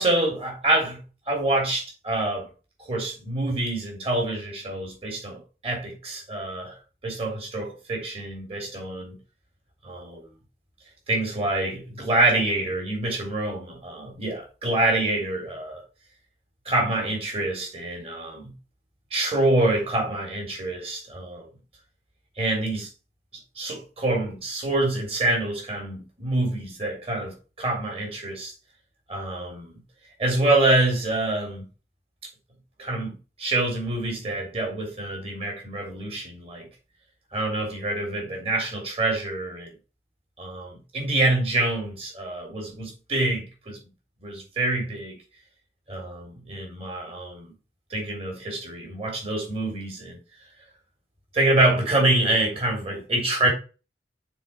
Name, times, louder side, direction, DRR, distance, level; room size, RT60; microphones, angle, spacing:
voice 1, 0.0-2.5 2.8-6.7 7.0-9.2 9.8-10.2 11.1-15.8 16.6-18.5 19.1-21.5 22.4-22.9 23.5-28.5 29.1-29.7 30.2-31.7 32.8-36.7 37.3-39.7 40.4-43.8 44.2-45.2 45.9-47.5 47.9-50.2 51.3-53.5, right 2 dB, 35° right, 3.1 m, -26 dB
7.0 x 4.1 x 5.9 m
head